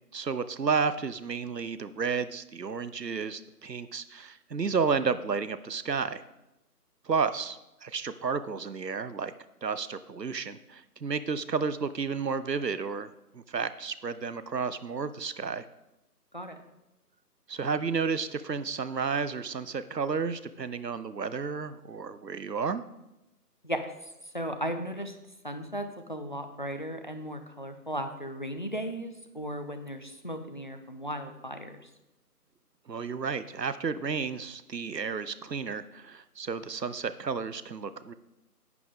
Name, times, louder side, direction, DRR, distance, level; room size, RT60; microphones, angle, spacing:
voice 1, 0.1-6.2 7.0-9.3 9.6-15.7 17.5-22.8 32.9-38.1, right 5 dB, 85° right, 13 dB, 0.8 m, -32 dB
voice 2, 24.3-25.1 25.4-31.8, equal, 30° left, 6 dB, 0.6 m, -36 dB
11.0 x 8.3 x 3.6 m, 0.93 s
figure-of-eight pair, 150°, 48 cm